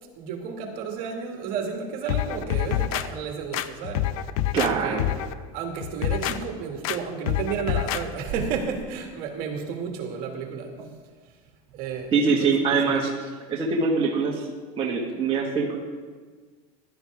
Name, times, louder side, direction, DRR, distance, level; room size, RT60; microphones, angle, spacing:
voice 1, 0.2-4.1 4.6-5.1 5.5-10.7 11.7-13.1, right 6 dB, 55° right, 2 dB, 2.2 m, -32 dB
sound 1, 2.1-3.1 3.5-4.7 5.0-5.3 5.8-6.4 6.8-7.0 7.3-8.0 8.4-8.5, left 12 dB, 75° left, 0.7 m, -26 dB
voice 2, 4.5-5.0 10.8-10.9 12.1-13.1 13.5-14.5 14.8-15.8, right 4 dB, 30° right, -3 dB, 1.7 m, -23 dB
15.5 x 12.0 x 3.6 m, 1.5 s
supercardioid pair, 130°, 18 cm